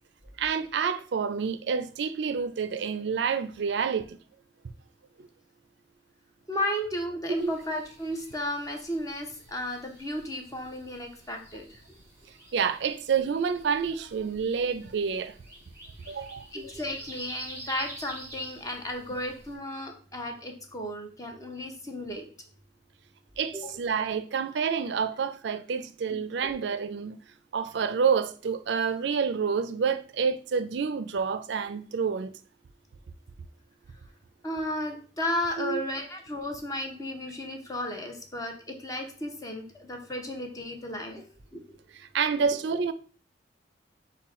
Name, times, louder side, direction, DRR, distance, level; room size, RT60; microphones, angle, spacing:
voice 1, 0.4-4.2 5.2-5.3 7.4-7.6 12.5-15.4 16.1-16.5 23.4-27.2 27.5-32.3 35.6-35.8 41.9-42.9, right 6 dB, 65° right, 0.4 m, -28 dB
voice 2, 6.5-12.0 16.5-22.2 23.5-23.7 34.4-41.2 41.5-41.8, left 1 dB, 20° left, 0.7 m, -34 dB
sound 1, 7.4-19.5, right 1 dB, 15° right, 1.5 m, -49 dB
5.7 x 2.2 x 3.6 m
head